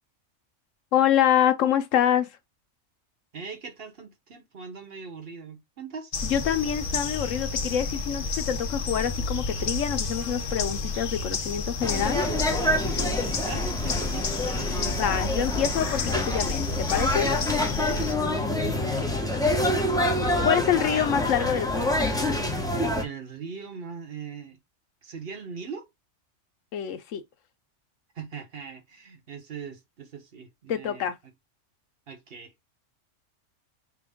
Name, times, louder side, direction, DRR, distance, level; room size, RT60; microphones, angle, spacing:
voice 1, 0.9-2.3 6.2-12.3 14.8-17.3 18.8-19.1 20.4-22.0 26.7-27.2 30.7-31.1, left 9 dB, 80° left, 1.1 m, -26 dB
voice 2, 3.3-6.1 13.4-14.3 14.5-15.0 17.9-18.1 23.0-24.6 25.0-25.9 28.1-31.1 32.1-32.5, right 5 dB, 50° right, 1.2 m, -40 dB
sound 1, 6.1-18.2, left 4 dB, 50° left, 0.9 m, -31 dB
sound 2, 11.8-23.0, left 1 dB, 5° left, 0.8 m, -27 dB
6.0 x 2.3 x 3.5 m
omnidirectional pair, 1.3 m